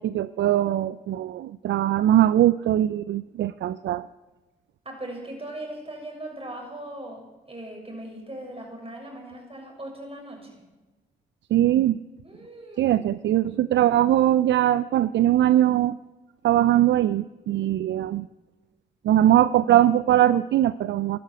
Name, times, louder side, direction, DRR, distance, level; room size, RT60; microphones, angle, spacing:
voice 1, 0.0-4.1 11.5-12.0 12.8-16.0 16.4-18.3 19.0-21.2, right 12 dB, 60° right, 16 dB, 0.5 m, -21 dB
voice 2, 4.9-10.6 12.2-13.0, right 1 dB, 25° right, 2 dB, 7.0 m, -39 dB
15.0 x 12.0 x 7.7 m, 1.1 s
hypercardioid pair, 45°, 21 cm